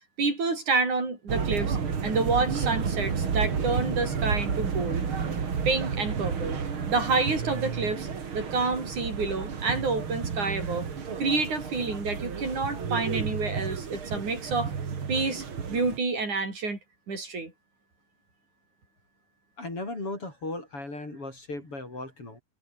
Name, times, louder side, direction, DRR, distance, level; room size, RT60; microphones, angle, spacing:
voice 1, 0.2-1.8 2.0-5.1 5.7-6.6 6.9-8.1 8.3-10.9 11.2-14.7 15.1-16.8 17.1-17.5, right 3 dB, 75° right, 8.7 m, -28 dB
sound 1, 1.3-16.0, right 6 dB, 45° right, 3.2 m, -31 dB
voice 2, 19.6-22.4, left 2 dB, 45° left, 8.7 m, -36 dB
omnidirectional pair, 3.4 m